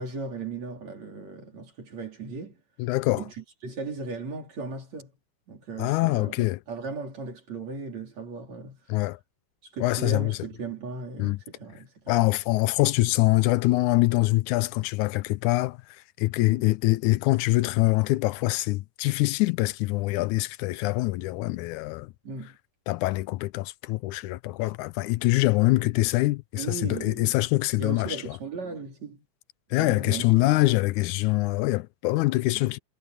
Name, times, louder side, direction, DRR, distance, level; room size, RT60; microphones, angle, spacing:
voice 1, 0.0-2.6 3.1-5.1 5.5-8.8 9.6-12.1 16.5-16.6 22.2-22.6 26.6-27.4 27.8-29.2 29.8-30.2 30.6-30.8, right 3 dB, 55° right, 5.1 m, -37 dB
voice 2, 2.8-3.2 5.8-6.6 8.9-9.2 9.8-10.4 11.2-11.4 12.1-22.1 22.9-28.2 29.7-32.8, left 20 dB, 80° left, 1.9 m, -24 dB
omnidirectional pair, 3.6 m